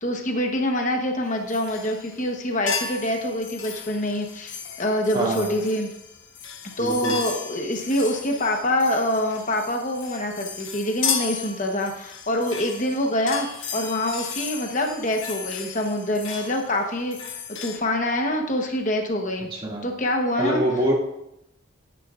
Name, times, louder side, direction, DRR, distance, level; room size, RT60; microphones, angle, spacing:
voice 1, 0.0-5.9 6.8-13.5 13.7-17.4 17.6-19.5 19.8-20.6, left 1 dB, 40° left, 2 dB, 1.0 m, -25 dB
sound 1, 1.5-2.3 2.7-17.8, left 6 dB, 70° left, 1.1 m, -35 dB
voice 2, 5.1-5.5 6.8-7.2 19.5-19.8 20.4-21.0, equal, 25° right, -3 dB, 2.1 m, -24 dB
13.0 x 9.4 x 2.5 m, 0.82 s
head